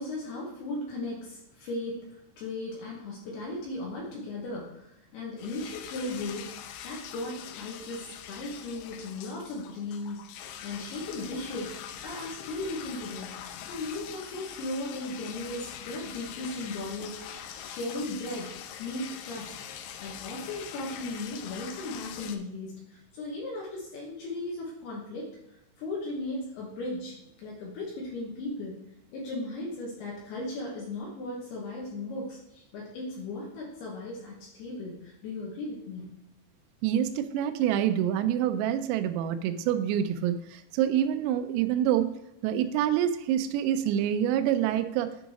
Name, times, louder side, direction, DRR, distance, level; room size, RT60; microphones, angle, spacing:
voice 1, 0.0-13.4 13.7-18.5 18.8-25.3 25.8-28.8 29.1-36.1, left 2 dB, 70° left, -3 dB, 2.8 m, -37 dB
sound 1, 5.4-22.4, left 9 dB, 85° left, 3.2 m, -43 dB
voice 2, 36.8-42.2 42.4-45.1, right 10 dB, 90° right, 8 dB, 2.4 m, -26 dB
9.8 x 4.0 x 4.8 m, 0.87 s
omnidirectional pair, 5.7 m